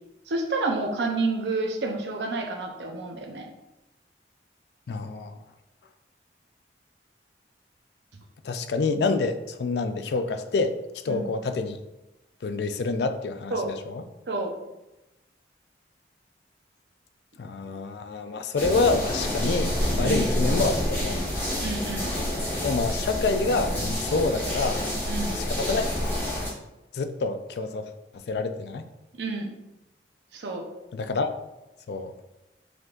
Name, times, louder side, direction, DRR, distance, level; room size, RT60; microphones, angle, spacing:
voice 1, 0.3-3.5 11.1-11.2 13.5-13.7 14.3-14.5 20.0-20.2 21.6-22.1 25.1-25.3 29.1-29.5 30.3-30.6, right 3 dB, 80° right, 3 dB, 0.7 m, -29 dB
voice 2, 4.9-5.4 8.4-10.8 11.0-11.8 12.4-14.0 17.4-21.2 22.6-24.8 25.3-25.8 26.9-27.9 28.3-28.8 30.9-31.3 31.9-32.1, left 3 dB, 70° left, 9 dB, 0.4 m, -27 dB
sound 1, 18.6-26.5, left 1 dB, 10° left, 1.4 m, -28 dB
5.0 x 3.7 x 2.5 m, 0.96 s
head